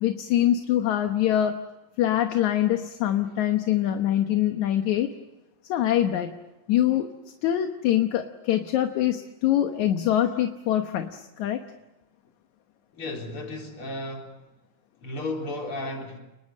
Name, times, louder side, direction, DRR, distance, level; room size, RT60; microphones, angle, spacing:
voice 1, 0.0-1.6 2.0-5.1 5.7-6.3 6.7-7.1 7.4-11.6, left 11 dB, 65° left, 2.3 m, -24 dB
voice 2, 12.9-14.4 15.0-16.2, left 2 dB, 40° left, 4.7 m, -34 dB
29.5 x 21.0 x 7.4 m
omnidirectional pair, 4.0 m